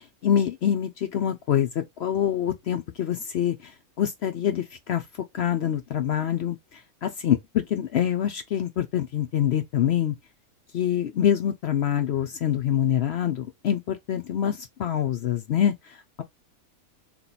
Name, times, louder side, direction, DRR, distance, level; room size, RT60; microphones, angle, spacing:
voice 1, 0.0-3.7 4.0-5.0 5.3-10.1 10.7-16.2, left 10 dB, 60° left, 0.7 m, -25 dB
3.4 x 3.0 x 4.0 m
omnidirectional pair, 1.5 m